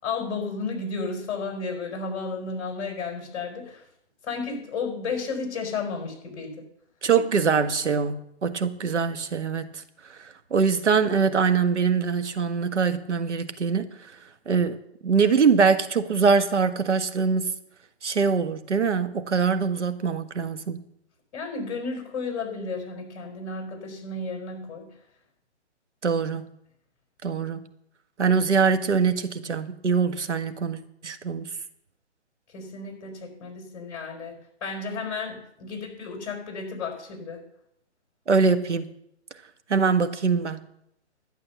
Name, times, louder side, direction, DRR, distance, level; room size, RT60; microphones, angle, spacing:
voice 1, 0.0-3.8 4.2-6.6 21.3-24.9 32.5-37.4, left 4 dB, 35° left, 3 dB, 4.9 m, -33 dB
voice 2, 7.0-9.8 10.2-13.9 14.5-17.5 18.0-20.8 26.0-26.5 27.2-27.7 28.2-31.5 38.3-38.9 39.7-40.7, right 5 dB, 80° right, 9 dB, 1.5 m, -23 dB
12.0 x 9.1 x 6.9 m, 0.74 s
hypercardioid pair, 155°, 35 cm